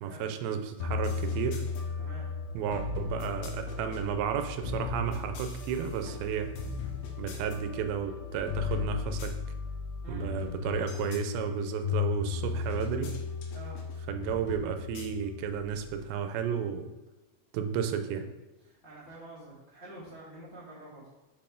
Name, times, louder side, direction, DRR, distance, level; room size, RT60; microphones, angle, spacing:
voice 1, 0.0-1.6 2.5-6.5 7.2-9.3 10.1-13.1 14.1-16.9 17.5-18.3, right 7 dB, 85° right, 8 dB, 2.5 m, -33 dB
sound 1, 0.8-16.1, left 6 dB, 80° left, 2.7 m, -35 dB
voice 2, 2.0-2.3 10.0-10.3 13.5-13.8 18.6-21.1, right 1 dB, 40° left, -9 dB, 0.8 m, -47 dB
6.9 x 4.9 x 3.7 m, 1.1 s
omnidirectional pair, 4.3 m